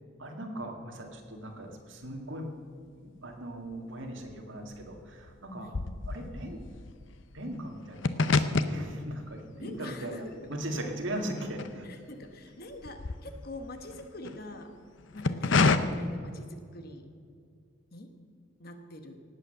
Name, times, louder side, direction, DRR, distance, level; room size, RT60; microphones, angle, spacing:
voice 1, 0.2-2.5 3.0-5.7 6.1-6.6 7.3-11.9, right 1 dB, 65° right, 3 dB, 2.1 m, -39 dB
sound 1, 2.9-3.7 4.0-12.3 12.6-14.4 15.0-15.8, left 4 dB, 65° left, 0.7 m, -30 dB
voice 2, 9.6-10.2 11.8-14.8 15.1-17.1 17.9-18.1 18.6-19.2, left 1 dB, 45° left, 6 dB, 1.2 m, -44 dB
18.0 x 8.4 x 6.7 m, 2.2 s
head